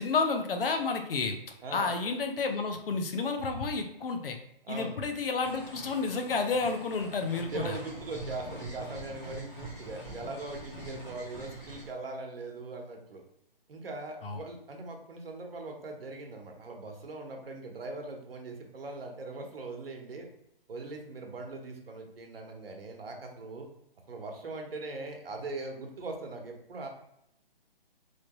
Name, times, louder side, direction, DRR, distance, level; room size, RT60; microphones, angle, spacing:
voice 1, 0.0-1.4 1.7-4.4 4.7-7.8 14.2-14.4, left 4 dB, 70° left, 5 dB, 0.7 m, -30 dB
voice 2, 1.6-2.0 4.6-5.0 7.4-13.2 13.7-20.3 20.7-23.7 24.1-26.9, right 3 dB, 75° right, 2 dB, 0.9 m, -40 dB
sound 1, 5.4-11.9, right 1 dB, 30° left, 1.2 m, -44 dB
3.2 x 2.9 x 2.9 m, 0.79 s
hypercardioid pair, 165°, 29 cm